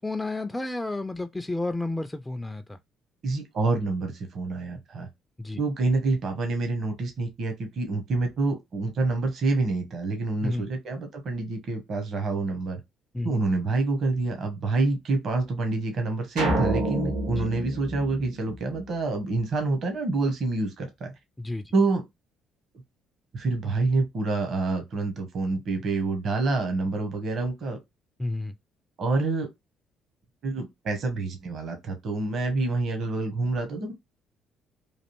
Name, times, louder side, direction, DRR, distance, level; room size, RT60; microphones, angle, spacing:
voice 1, 0.0-2.8 5.4-5.6 10.4-10.7 13.1-13.3 17.4-17.5 21.4-21.7 28.2-28.5, left 2 dB, 15° left, 0.3 m, -31 dB
voice 2, 3.2-5.1 5.6-12.8 13.2-21.1 21.7-22.0 23.3-27.8 29.0-29.5 30.4-33.9, right 3 dB, 55° right, 0.9 m, -27 dB
sound 1, 16.4-18.9, right 1 dB, 85° right, 1.2 m, -28 dB
3.2 x 2.5 x 2.9 m
hypercardioid pair, 50°, 0 cm